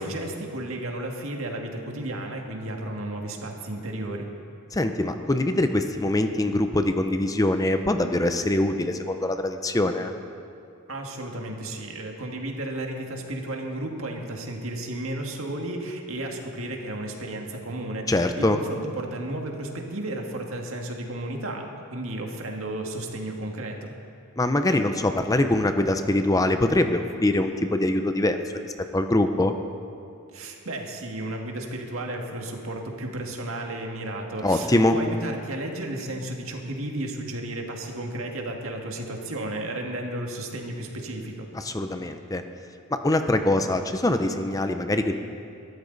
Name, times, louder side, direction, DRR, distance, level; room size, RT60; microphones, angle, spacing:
voice 1, 0.0-4.3 10.9-23.9 30.3-41.5, right 1 dB, 65° right, 1 dB, 1.9 m, -33 dB
voice 2, 4.7-10.1 18.1-18.6 24.4-29.5 34.4-35.0 41.5-42.4 42.9-45.2, left 1 dB, 15° left, 7 dB, 0.6 m, -23 dB
22.5 x 13.5 x 4.0 m, 2.5 s
head